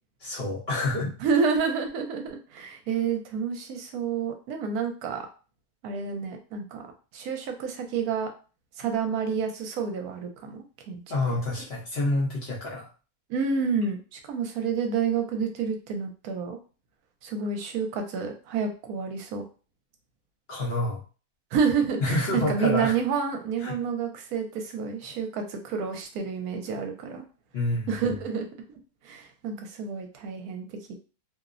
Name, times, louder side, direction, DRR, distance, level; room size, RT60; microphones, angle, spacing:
voice 1, 0.2-1.1 11.1-12.9 20.5-21.0 22.0-22.9 23.6-23.8 27.5-28.1, left 2 dB, 55° left, -5 dB, 0.8 m, -28 dB
voice 2, 1.2-5.3 5.8-6.8 7.1-8.3 8.8-11.0 11.3-11.4 13.3-16.6 17.2-19.4 21.5-27.3 27.9-28.5 29.0-30.9, right 6 dB, 75° right, 4 dB, 1.0 m, -29 dB
2.8 x 2.0 x 2.4 m, 0.36 s
omnidirectional pair, 1.6 m